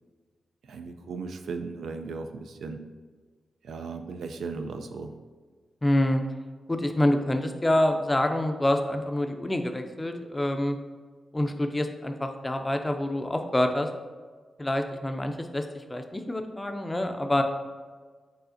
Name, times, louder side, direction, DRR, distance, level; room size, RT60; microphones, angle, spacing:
voice 1, 0.7-2.8 3.6-5.1, right 4 dB, 90° right, 6 dB, 0.4 m, -36 dB
voice 2, 5.8-6.2 6.7-10.8 11.3-13.9 14.6-17.4, left 1 dB, 15° left, 5 dB, 0.4 m, -26 dB
4.8 x 4.2 x 2.6 m, 1.5 s
cardioid pair, 95°, 0 cm